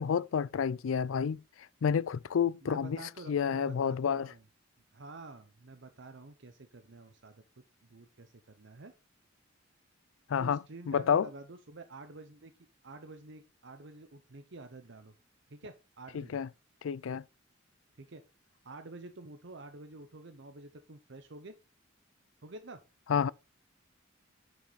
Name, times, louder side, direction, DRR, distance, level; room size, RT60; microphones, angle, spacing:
voice 1, 0.0-4.3 10.3-10.6 10.9-11.3 16.1-16.5 16.8-17.2 23.1-23.3, left 7 dB, 85° left, 0.4 m, -30 dB
voice 2, 2.6-4.4 4.9-7.4 7.8-8.9 10.4-12.5 12.8-15.1 15.5-16.4 17.9-18.2 18.6-21.5 22.4-22.8, right 2 dB, 60° right, 0.8 m, -49 dB
9.4 x 7.0 x 4.1 m
head